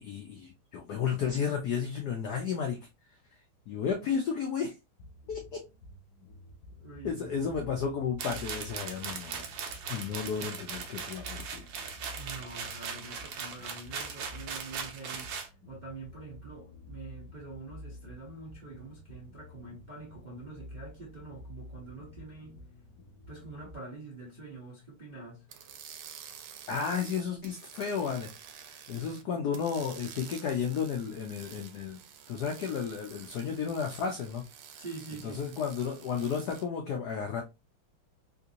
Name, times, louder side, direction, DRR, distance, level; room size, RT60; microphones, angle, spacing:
voice 1, 0.0-2.9 3.7-4.7 5.3-5.7 7.0-9.4 9.9-11.7 26.7-28.3 28.6-32.0 32.3-34.4 35.2-37.4, left 6 dB, 85° left, 0.8 m, -33 dB
sound 1, 5.0-23.8, left 1 dB, 65° left, 1.0 m, -50 dB
voice 2, 6.7-7.6 12.1-15.4 15.7-22.6 23.3-25.5 28.9-29.5 30.2-30.4 34.8-35.6, right 3 dB, 50° right, 0.5 m, -46 dB
sound 2, 8.2-15.5, right 6 dB, 70° right, 1.2 m, -39 dB
sound 3, 25.5-29.2 29.5-36.6, right 8 dB, 85° right, 1.5 m, -50 dB
3.6 x 2.5 x 2.7 m
omnidirectional pair, 2.4 m